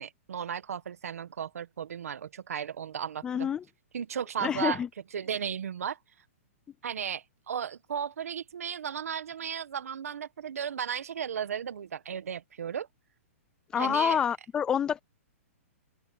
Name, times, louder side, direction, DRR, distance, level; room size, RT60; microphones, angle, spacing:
voice 1, 0.0-3.5 3.9-4.8 5.1-6.0 6.8-12.9 13.8-14.2, right 8 dB, 85° right, 1.4 m, -35 dB
voice 2, 3.2-3.6 4.4-4.9 13.7-15.0, left 8 dB, 10° left, 0.4 m, -27 dB
open air
hypercardioid pair, 170°, 8 cm